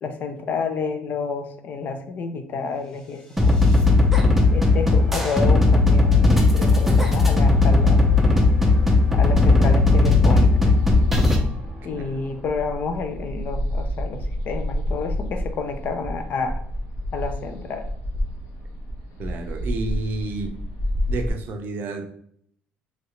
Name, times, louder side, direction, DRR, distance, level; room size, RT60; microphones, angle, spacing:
voice 1, 0.0-3.6 4.5-8.0 9.1-10.8 11.8-16.6 17.1-17.8, left 5 dB, 50° left, 7 dB, 0.5 m, -30 dB
sound 1, 2.9-13.1, left 1 dB, 15° left, 0.9 m, -36 dB
sound 2, 3.4-11.4, left 3 dB, 5° right, 0.5 m, -17 dB
sound 3, 7.4-21.3, equal, 75° left, 1.1 m, -30 dB
voice 2, 19.2-20.6 21.1-22.1, right 3 dB, 55° right, 5 dB, 0.5 m, -30 dB
3.2 x 2.5 x 2.9 m, 0.64 s
cardioid pair, 120°, 4 cm